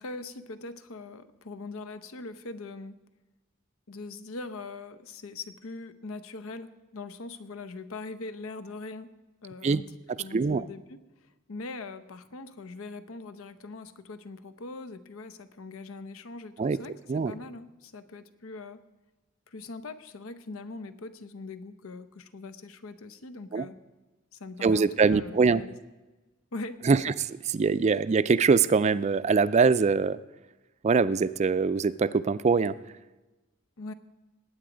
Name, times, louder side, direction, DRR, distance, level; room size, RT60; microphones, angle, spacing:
voice 1, 0.0-3.0 3.9-9.1 9.4-18.8 19.5-23.8 24.3-25.7 26.5-27.1 33.8-33.9, left 3 dB, 85° left, 12 dB, 0.8 m, -42 dB
voice 2, 10.3-10.6 16.6-16.8 17.1-17.3 23.5-23.6 24.6-25.6 26.9-27.0 27.5-30.2 30.8-32.7, right 4 dB, 35° right, 15 dB, 0.3 m, -23 dB
19.5 x 8.8 x 5.1 m, 1.1 s
head